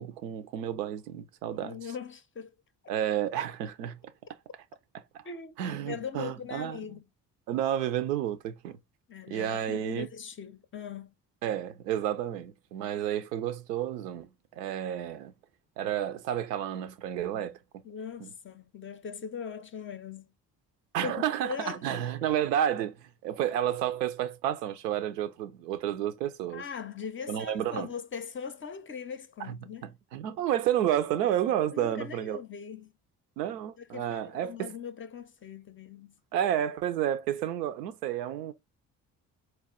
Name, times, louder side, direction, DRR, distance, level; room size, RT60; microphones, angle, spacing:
voice 1, 0.0-1.8 2.9-4.0 5.6-6.8 7.5-8.8 9.3-10.1 11.4-14.3 14.6-15.3 15.8-17.6 18.2-18.3 20.9-26.6 27.3-27.9 29.5-29.6 30.1-32.4 33.4-34.7 36.3-38.5, right 11 dB, 80° right, 0.5 m, -31 dB
voice 2, 1.5-2.5 5.2-7.1 9.1-11.1 17.8-20.3 21.0-21.8 26.5-29.9 31.7-32.9 33.9-36.2, left 7 dB, 25° left, 0.5 m, -40 dB
4.3 x 2.3 x 3.5 m
figure-of-eight pair, 45°, 48 cm